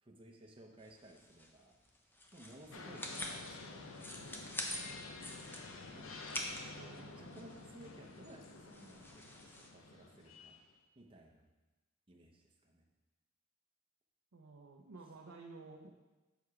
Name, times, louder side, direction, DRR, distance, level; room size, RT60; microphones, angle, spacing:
voice 1, 0.0-1.8 2.3-4.5 4.9-5.4 5.9-6.2 6.8-10.5 11.0-11.4 12.1-12.9, right 1 dB, 25° right, 0 dB, 0.8 m, -58 dB
sound 1, 0.8-9.7, left 1 dB, 10° left, 0.6 m, -47 dB
sound 2, 2.7-10.7, left 3 dB, 65° left, 0.7 m, -50 dB
voice 2, 6.7-7.4 14.3-15.9, right 3 dB, 70° right, -1 dB, 0.6 m, -53 dB
6.9 x 4.8 x 4.8 m, 1.2 s
head